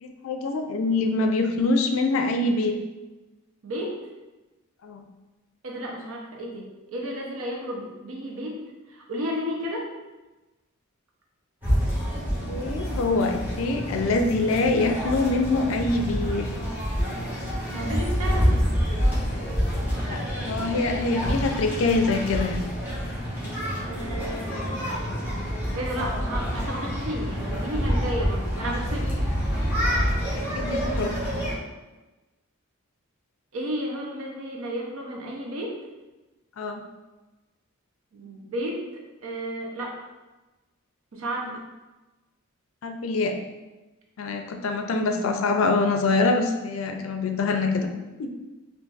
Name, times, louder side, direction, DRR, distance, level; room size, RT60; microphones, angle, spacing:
voice 1, 0.0-2.8 4.8-5.0 12.5-16.5 20.1-22.6 30.3-31.1 36.6-36.8 42.8-43.3 44.2-47.9 48.2-48.3, left 3 dB, 75° left, 5 dB, 0.4 m, -24 dB
voice 2, 3.6-4.0 5.6-8.6 8.9-9.9 17.7-18.6 23.8-24.8 25.7-29.1 33.5-35.8 38.1-40.0 41.1-41.5, equal, 80° right, -1 dB, 0.7 m, -32 dB
sound 1, 11.6-31.5, equal, 10° right, 1.0 m, -27 dB
3.8 x 2.5 x 2.4 m, 1.1 s
head